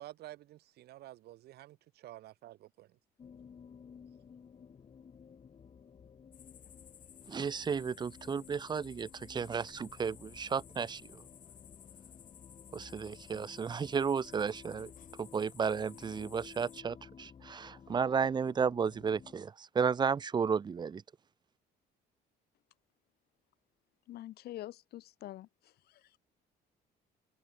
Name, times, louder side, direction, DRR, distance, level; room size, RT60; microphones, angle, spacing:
voice 1, 0.0-2.9, right 15 dB, 70° right, 1.8 m, -50 dB
sound 1, 3.2-19.3, left 6 dB, 35° left, 2.8 m, -55 dB
sound 2, 6.3-16.8, left 9 dB, 50° left, 5.8 m, -57 dB
voice 2, 7.3-11.2 12.7-14.9 15.2-21.0, right 6 dB, 25° right, 0.6 m, -33 dB
voice 3, 24.1-26.2, left 14 dB, 70° left, 2.1 m, -46 dB
cardioid pair, 110°, 17 cm